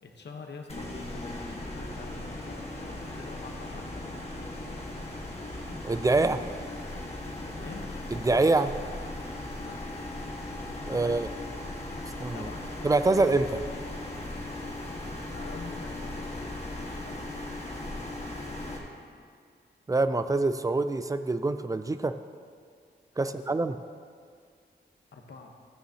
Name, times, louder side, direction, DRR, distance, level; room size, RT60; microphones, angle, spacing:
voice 1, 0.0-4.2 7.4-7.9 9.6-9.9 10.9-11.3 12.3-12.7 14.9-17.2 23.1-23.5 25.1-25.6, left 4 dB, 75° left, 2 dB, 1.0 m, -46 dB
sound 1, 0.7-18.8, left 1 dB, 35° left, 1.5 m, -38 dB
voice 2, 5.8-6.4 8.1-8.7 10.9-11.3 12.2-12.5 12.8-13.6 19.9-22.1 23.2-23.8, right 3 dB, 20° right, 11 dB, 0.4 m, -25 dB
14.0 x 9.1 x 2.8 m, 2.1 s
wide cardioid pair, 115°, 18 cm